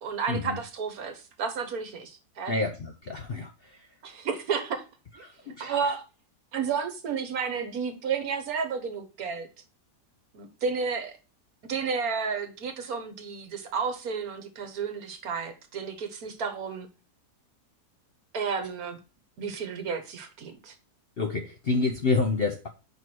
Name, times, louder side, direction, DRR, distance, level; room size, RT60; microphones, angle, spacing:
voice 1, 0.0-2.5 4.0-4.8 5.1-5.2 5.6-6.0 6.5-9.5 10.3-11.2 11.6-16.9 18.3-19.0 19.4-20.7, right 5 dB, 65° right, 1.6 m, -32 dB
voice 2, 2.5-3.5 5.5-5.7 21.2-22.7, left 3 dB, 55° left, 0.7 m, -28 dB
5.1 x 4.7 x 6.0 m
omnidirectional pair, 1.7 m